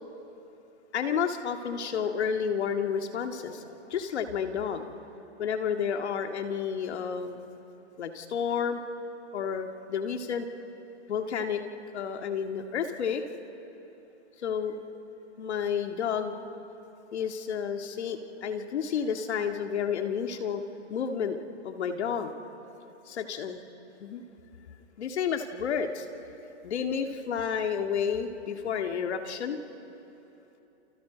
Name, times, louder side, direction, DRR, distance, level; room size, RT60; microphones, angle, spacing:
voice 1, 0.9-4.9 5.4-7.4 8.0-8.8 9.3-10.5 11.1-11.6 11.9-13.2 14.4-14.8 15.4-16.4 17.1-20.6 20.9-22.3 23.1-23.6 24.0-24.2 25.0-26.1 26.6-29.6, left 7 dB, 65° left, 5 dB, 2.1 m, -31 dB
30.0 x 29.0 x 5.2 m, 3.0 s
hypercardioid pair, 145°, 35 cm